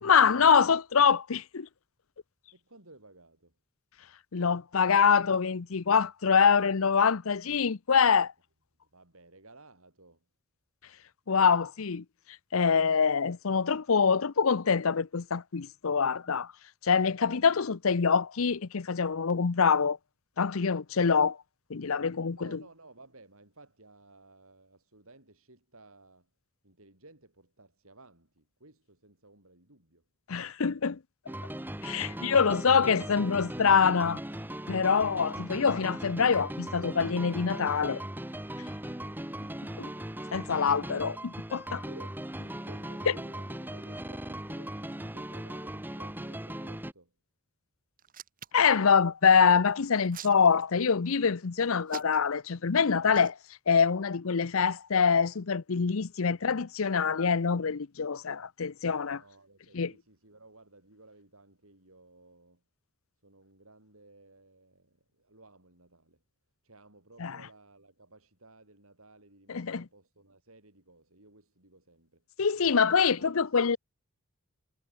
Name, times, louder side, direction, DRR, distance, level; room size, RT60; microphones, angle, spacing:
voice 1, 0.0-1.7 4.3-8.3 11.3-12.0 12.5-16.5 16.8-20.0 20.4-21.4 21.7-22.4 30.3-31.0 31.8-34.2 34.7-38.0 39.8-39.9 40.3-41.8 48.5-53.4 53.7-59.2 59.7-59.9 67.2-67.4 69.5-69.8 72.4-73.8, left 6 dB, 70° left, 0.7 m, -25 dB
voice 2, 2.5-3.6 8.8-10.3 22.3-26.3 26.6-30.0 31.9-32.3 41.9-42.2 42.6-47.2 59.1-62.6 63.2-66.2 66.6-72.2 72.6-73.6, right 2 dB, 75° right, 8.0 m, -56 dB
sound 1, 31.3-46.9, right 1 dB, 10° right, 1.7 m, -39 dB
Hands, 48.0-48.7 49.8-50.9 51.9-52.5 53.1-53.3, right 8 dB, 40° right, 1.7 m, -45 dB
head